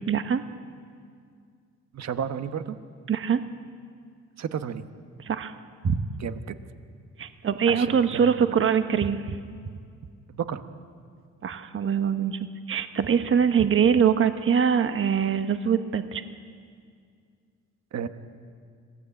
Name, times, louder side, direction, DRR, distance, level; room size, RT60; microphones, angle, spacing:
voice 1, 0.1-0.4 3.1-3.4 5.2-5.5 5.8-6.0 7.2-9.4 11.4-12.4 12.7-16.2, right 7 dB, 45° right, 9 dB, 1.2 m, -23 dB
voice 2, 1.9-2.8 4.4-4.8 6.2-6.6 7.7-8.6 10.3-10.6 17.9-18.1, right 8 dB, 60° right, 9 dB, 1.4 m, -32 dB
26.0 x 17.0 x 8.4 m, 2.2 s
cardioid pair, 90°, 30 cm